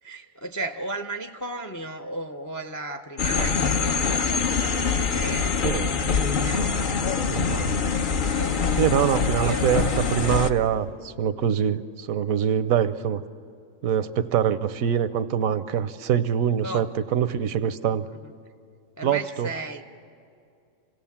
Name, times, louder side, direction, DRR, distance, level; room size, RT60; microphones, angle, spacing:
voice 1, 0.0-5.9 6.4-6.7 8.3-8.9 9.4-9.9 10.2-10.3 16.6-16.9 17.9-18.0 18.2-18.3 19.0-19.8, right 2 dB, 25° left, 6 dB, 0.3 m, -35 dB
sound 1, 3.2-10.5, left 5 dB, 45° left, 0.8 m, -24 dB
voice 2, 5.6-6.0 7.3-7.8 8.8-13.2 13.8-18.1 19.0-19.5, right 9 dB, 80° right, 14 dB, 1.1 m, -24 dB
27.0 x 17.0 x 7.1 m, 2.4 s
omnidirectional pair, 1.4 m